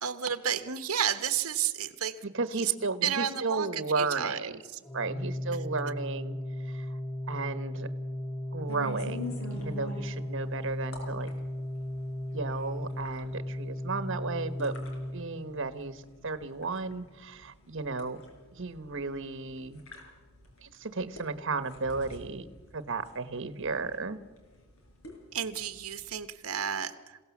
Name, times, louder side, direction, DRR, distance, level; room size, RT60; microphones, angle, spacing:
voice 1, 0.0-2.2 2.5-2.7 3.0-4.6 25.3-27.2, right 9 dB, 90° right, 10 dB, 1.2 m, -31 dB
voice 2, 2.2-4.5 4.9-6.4 6.7-6.9 7.3-7.9 8.5-11.3 12.3-14.8 15.1-18.2 18.5-19.8 20.6-22.5 22.7-24.2, right 3 dB, 60° right, 11 dB, 1.1 m, -34 dB
Organ, 4.8-15.7, left 1 dB, 10° left, 0.6 m, -36 dB
sound 1, 8.7-26.2, left 1 dB, 75° left, 5.4 m, -47 dB
28.0 x 17.0 x 7.2 m, 1.4 s
head